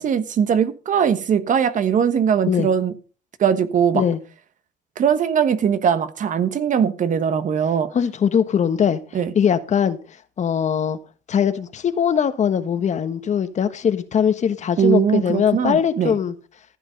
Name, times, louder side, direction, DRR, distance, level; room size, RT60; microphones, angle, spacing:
voice 1, 0.0-2.9 3.4-4.0 5.0-7.9 9.1-9.3 14.8-16.2, right 7 dB, 50° right, 1.3 m, -20 dB
voice 2, 7.9-9.0 9.3-10.0 10.4-11.0 11.3-16.3, left 8 dB, 45° left, 1.3 m, -21 dB
14.5 x 8.1 x 5.3 m
cardioid pair, 110°, 17 cm